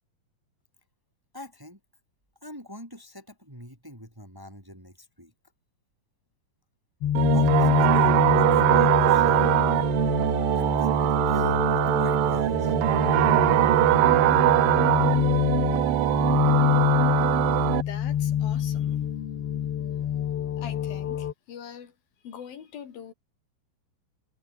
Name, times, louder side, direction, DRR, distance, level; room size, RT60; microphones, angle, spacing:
voice 1, 1.3-1.8 2.4-5.3 7.3-9.5 10.5-11.0 11.3-12.7, left 1 dB, 5° right, 3.1 m, -43 dB
sound 1, 7.0-21.3, left 10 dB, 55° left, 1.8 m, -26 dB
sound 2, 7.2-17.8, right 15 dB, 80° right, 2.7 m, -22 dB
voice 2, 17.4-19.0 20.6-21.9 22.2-23.1, left 8 dB, 80° left, 4.6 m, -43 dB
omnidirectional pair, 4.1 m